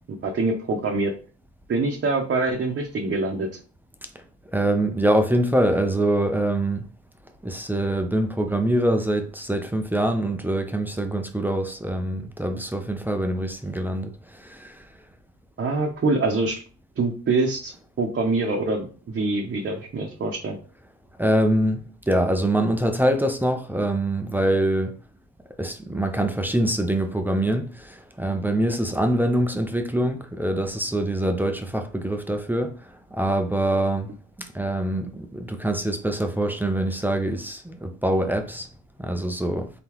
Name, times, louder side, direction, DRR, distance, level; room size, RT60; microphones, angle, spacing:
voice 1, 0.1-1.1 1.7-3.5 15.6-16.5 17.0-17.7 18.0-20.6, right 3 dB, 40° right, 0.9 m, -24 dB
voice 2, 4.5-6.8 7.4-14.8 21.2-24.9 25.6-32.7 33.1-34.1 34.5-38.7 39.0-39.7, right 1 dB, 5° right, 0.6 m, -24 dB
3.8 x 3.8 x 3.0 m
cardioid pair, 90°, 30 cm